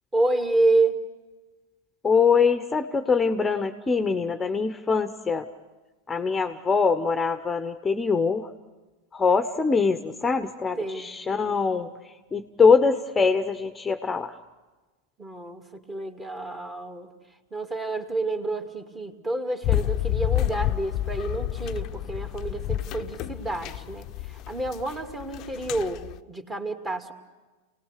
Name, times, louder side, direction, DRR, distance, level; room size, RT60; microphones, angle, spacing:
voice 1, 0.1-1.0 10.8-11.1 15.2-17.1 17.5-26.0 26.3-27.1, right 2 dB, 20° right, 6 dB, 2.5 m, -28 dB
voice 2, 2.0-5.5 6.1-8.5 9.1-11.9 12.3-14.3, left 5 dB, 15° left, 8 dB, 1.0 m, -23 dB
sound 1, 19.6-26.2, left 14 dB, 45° left, 0.7 m, -29 dB
28.5 x 19.0 x 6.7 m, 1.2 s
hypercardioid pair, 115°, 0 cm